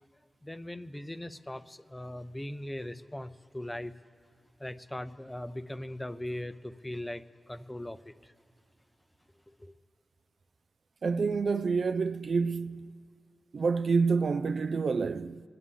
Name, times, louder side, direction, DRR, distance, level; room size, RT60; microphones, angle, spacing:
voice 1, 0.4-3.9 4.6-8.3 9.6-9.7, left 1 dB, 10° left, 0.6 m, -40 dB
voice 2, 11.0-12.9 13.5-15.4, right 4 dB, 60° right, 0.3 m, -28 dB
25.0 x 9.6 x 3.8 m
wide cardioid pair, 85°, 0 cm